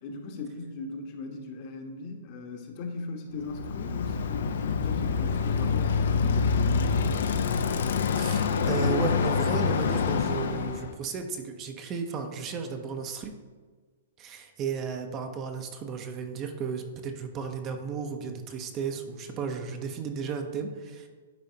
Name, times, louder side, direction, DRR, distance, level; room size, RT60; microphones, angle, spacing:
voice 1, 0.0-7.5, left 3 dB, 40° left, 3 dB, 1.0 m, -39 dB
Bicycle, 3.4-10.9, left 5 dB, 70° left, 0.5 m, -26 dB
voice 2, 8.2-13.3 14.2-21.1, right 5 dB, 30° right, 5 dB, 0.6 m, -34 dB
10.5 x 4.1 x 2.8 m, 1.4 s
hypercardioid pair, 135°, 0 cm